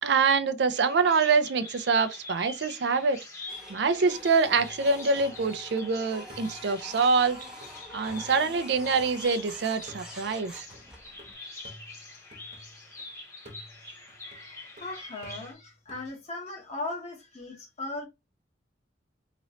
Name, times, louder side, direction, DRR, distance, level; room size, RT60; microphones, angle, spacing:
voice 1, 0.0-3.2 3.7-7.4 7.9-10.7, right 4 dB, 70° right, 0.5 m, -25 dB
Bird vocalization bird call bird song, 0.7-15.5, left 2 dB, 15° left, 1.2 m, -45 dB
Printer, 3.5-11.3, left 1 dB, 5° right, 0.9 m, -46 dB
sound 1, 4.5-5.9 6.3-9.4 9.9-13.0 13.4-16.1, equal, 45° right, 1.1 m, -53 dB
voice 2, 14.8-18.1, left 2 dB, 40° left, 1.2 m, -37 dB
3.0 x 2.9 x 2.7 m
head